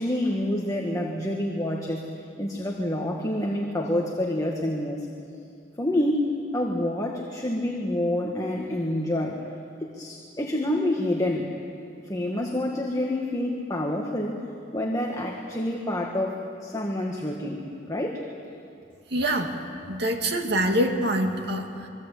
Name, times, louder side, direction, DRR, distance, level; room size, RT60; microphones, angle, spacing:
voice 1, 0.0-2.0 2.4-5.1 5.8-9.4 9.8-11.5 12.1-14.4 14.7-18.2, left 1 dB, 20° left, 0 dB, 1.7 m, -27 dB
voice 2, 19.1-19.5 19.9-21.9, right 1 dB, 65° right, 3 dB, 2.4 m, -25 dB
25.5 x 23.0 x 8.4 m, 2.5 s
head